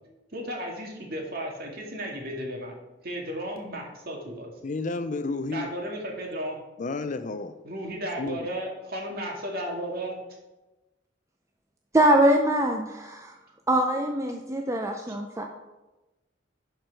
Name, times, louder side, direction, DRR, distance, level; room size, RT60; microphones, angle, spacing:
voice 1, 0.3-2.8 3.0-4.5 5.5-6.6 7.6-10.2, right 1 dB, 55° right, 2.0 m, -34 dB
voice 2, 4.6-5.7 6.8-7.5 8.2-8.4, left 3 dB, 40° left, 0.5 m, -31 dB
voice 3, 11.9-13.3 13.7-15.5, right 1 dB, 15° right, 0.6 m, -23 dB
11.0 x 4.6 x 4.7 m
head